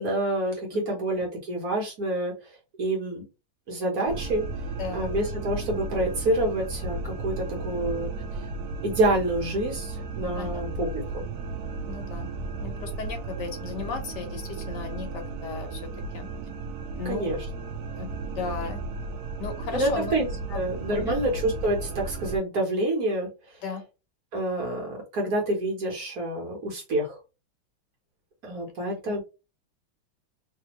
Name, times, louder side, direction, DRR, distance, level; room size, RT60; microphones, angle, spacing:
voice 1, 0.0-3.2 3.7-4.4 4.9-8.4 8.8-11.3 17.0-17.4 19.7-23.3 24.3-27.2 28.4-29.2, right 1 dB, 50° right, -1 dB, 1.6 m, -28 dB
sound 1, 4.1-22.4, right 3 dB, 70° right, 1.0 m, -34 dB
voice 2, 4.8-5.1 10.3-10.6 11.9-12.3 12.6-15.8 16.1-16.3 16.9-17.3 18.0-18.1 18.4-18.8 19.4-20.1 20.5-20.6 21.0-21.1 23.6-23.8, left 5 dB, 65° left, 4 dB, 1.4 m, -35 dB
3.4 x 3.0 x 3.0 m, 0.29 s
omnidirectional pair, 2.2 m